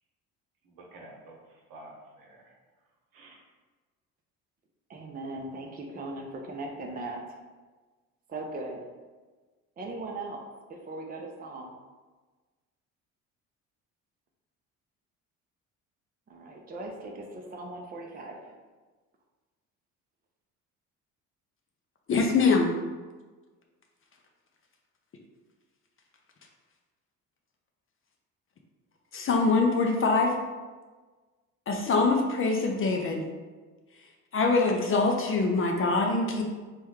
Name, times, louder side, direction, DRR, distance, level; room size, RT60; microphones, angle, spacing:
voice 1, 0.6-2.6 3.1-3.4, right 1 dB, 60° right, -2 dB, 1.0 m, -50 dB
voice 2, 4.9-7.3 8.3-8.9 9.8-10.4 10.7-11.7 16.3-18.6, right 2 dB, 25° right, 1 dB, 0.5 m, -39 dB
voice 3, 22.1-22.7 29.1-30.3 31.7-33.2 34.3-36.4, left 3 dB, 35° left, 1 dB, 0.5 m, -24 dB
3.5 x 2.1 x 3.2 m, 1.3 s
hypercardioid pair, 60°, 38 cm